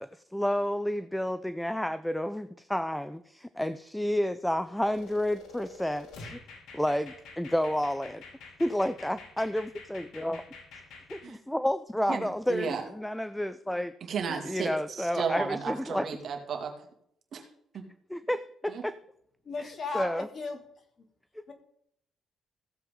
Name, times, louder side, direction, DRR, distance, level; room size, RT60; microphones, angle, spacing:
voice 1, 0.0-6.4 6.7-8.2 8.6-10.4 11.1-13.9 14.4-16.1 18.1-19.0 19.6-20.3 21.4-21.5, left 1 dB, 5° left, 13 dB, 0.5 m, -30 dB
sound 1, 4.8-11.2, left 3 dB, 80° left, 2.6 m, -48 dB
voice 2, 12.1-12.8 14.1-16.7 17.3-17.4 17.7-17.8 18.7-18.8, right 6 dB, 60° right, 3 dB, 2.3 m, -33 dB
voice 3, 19.4-20.6 21.5-21.6, left 3 dB, 50° left, 3 dB, 2.7 m, -35 dB
15.5 x 7.8 x 3.8 m, 0.70 s
cardioid pair, 90°, 0 cm